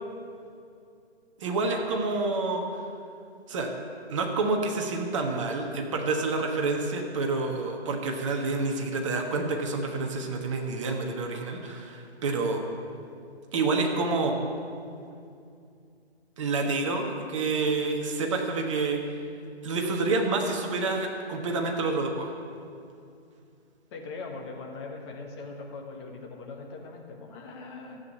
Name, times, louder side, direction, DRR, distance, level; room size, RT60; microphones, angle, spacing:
voice 1, 1.4-2.6 3.5-3.7 4.1-12.6 13.5-14.3 16.4-19.0 19.6-22.3, right 3 dB, 30° right, 2 dB, 1.3 m, -28 dB
voice 2, 23.9-28.0, left 3 dB, 25° left, 0 dB, 1.6 m, -40 dB
13.5 x 8.4 x 8.5 m, 2.4 s
figure-of-eight pair, 140°, 33 cm